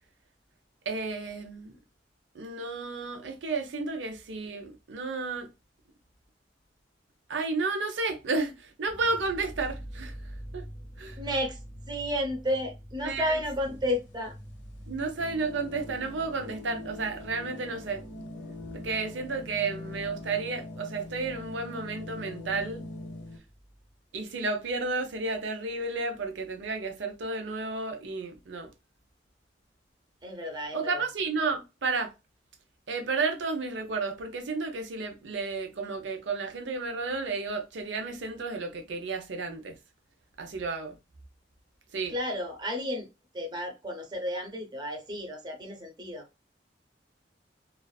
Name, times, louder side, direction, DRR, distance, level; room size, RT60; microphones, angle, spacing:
voice 1, 0.9-1.7 2.3-5.5 7.3-10.1 10.5-10.6 11.0-11.2 13.0-13.4 14.9-18.3 18.7-22.8 24.1-28.7 30.7-32.1 32.9-39.8 40.4-41.0 41.9-42.1, right 3 dB, 80° right, 0.6 m, -32 dB
sound 1, 8.9-24.0 24.2-25.3 25.7-25.8 26.1-26.8, equal, 15° left, 0.5 m, -47 dB
voice 2, 11.2-11.6 11.9-14.4 30.2-31.1 42.1-43.1 43.3-46.3, equal, 25° right, 0.7 m, -32 dB
sound 2, 13.5-23.4, left 2 dB, 85° left, 0.7 m, -43 dB
2.4 x 2.3 x 2.2 m
head